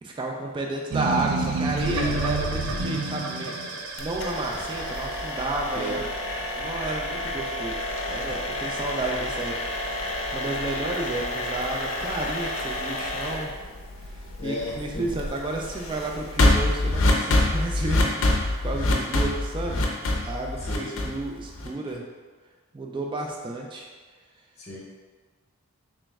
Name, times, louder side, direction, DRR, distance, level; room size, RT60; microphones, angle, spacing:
voice 1, 0.0-3.6 4.0-6.0 6.6-7.8 8.0-9.6 10.0-13.5 14.4-19.9 20.2-22.0 22.7-23.9, right 2 dB, 20° right, 0 dB, 0.3 m, -32 dB
sound 1, 0.9-5.3, right 3 dB, 80° right, 0.5 m, -28 dB
sound 2, 4.0-21.9, left 1 dB, 60° left, 0.5 m, -27 dB
voice 2, 14.4-15.0 20.6-20.9 24.6-24.8, left 1 dB, 30° left, -6 dB, 0.8 m, -34 dB
3.1 x 3.1 x 3.4 m, 1.4 s
head